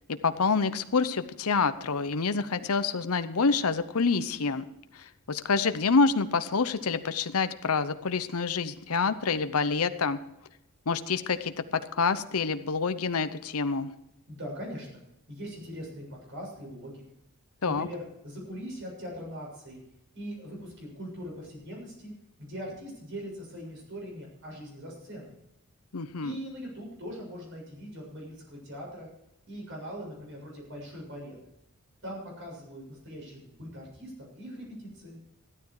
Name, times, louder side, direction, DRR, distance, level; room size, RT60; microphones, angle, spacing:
voice 1, 0.2-4.6 4.9-10.2 10.9-13.9 17.6-17.9 25.9-26.4, left 4 dB, 80° left, 11 dB, 0.8 m, -27 dB
voice 2, 14.3-15.0 15.3-17.1 17.6-19.8 20.1-22.1 22.4-25.4 26.2-29.1 29.5-31.4 32.0-35.2, equal, 55° right, -1 dB, 7.1 m, -41 dB
14.0 x 12.5 x 4.8 m, 0.83 s
head